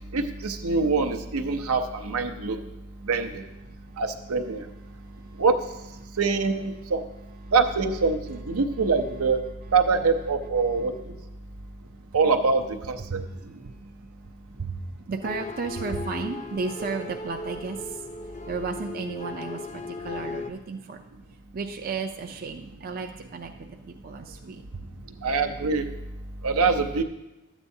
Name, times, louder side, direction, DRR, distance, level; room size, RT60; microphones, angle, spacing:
voice 1, 0.1-2.6 3.0-3.4 4.0-4.7 5.4-5.7 6.2-7.0 7.5-9.4 9.7-11.1 12.1-13.2 25.2-25.9 26.4-27.0, right 4 dB, 80° right, 5 dB, 0.7 m, -24 dB
voice 2, 4.9-5.4 7.4-7.5 10.6-10.9 13.1-13.8 14.6-18.0 18.5-21.0 21.5-24.9, right 4 dB, 40° right, 4 dB, 0.4 m, -34 dB
sound 1, 15.2-20.5, left 3 dB, 30° left, 0.5 m, -37 dB
12.5 x 8.1 x 2.7 m, 0.97 s
head